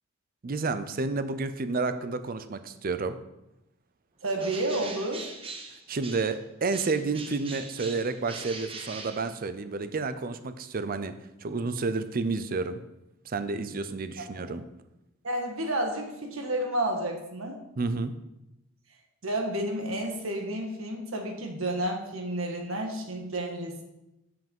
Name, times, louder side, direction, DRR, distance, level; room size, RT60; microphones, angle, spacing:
voice 1, 0.4-3.2 5.9-11.1 11.4-12.8 13.3-14.6 17.8-18.2, right 3 dB, 45° right, 11 dB, 0.5 m, -30 dB
voice 2, 4.2-5.3 14.2-14.5 15.2-17.6 19.2-23.8, right 1 dB, 80° right, 2 dB, 1.5 m, -31 dB
Bird, 4.3-6.4 6.7-9.8, right 3 dB, 25° right, 0.9 m, -42 dB
7.7 x 5.7 x 5.4 m, 0.92 s
head